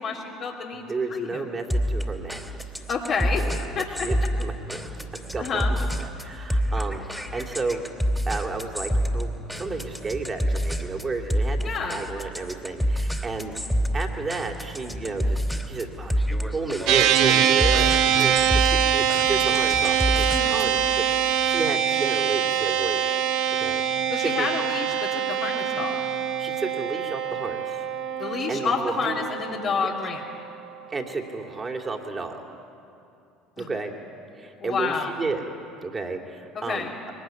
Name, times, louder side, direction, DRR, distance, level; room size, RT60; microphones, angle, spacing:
voice 1, 0.0-0.8 1.1-1.4 2.9-3.4 3.7-4.1 5.4-5.7 11.6-12.0 20.3-20.6 24.1-26.0 28.2-30.2 33.6-33.7 34.6-35.1 36.5-36.9, left 5 dB, 50° left, -4 dB, 3.0 m, -29 dB
voice 2, 0.7-2.7 3.4-4.8 5.1-7.8 8.3-13.7 13.9-23.3 23.6-24.5 26.4-27.9 28.2-29.2 29.8-29.9 30.9-32.4 33.6-33.9 34.3-35.4 35.8-36.9, right 3 dB, 25° right, 3 dB, 3.2 m, -32 dB
sound 1, 1.7-20.8, equal, ahead, 3.0 m, -28 dB
sound 2, 16.9-30.4, right 9 dB, 60° right, 1.3 m, -24 dB
23.0 x 20.0 x 9.4 m, 2.6 s
hypercardioid pair, 65°, 0 cm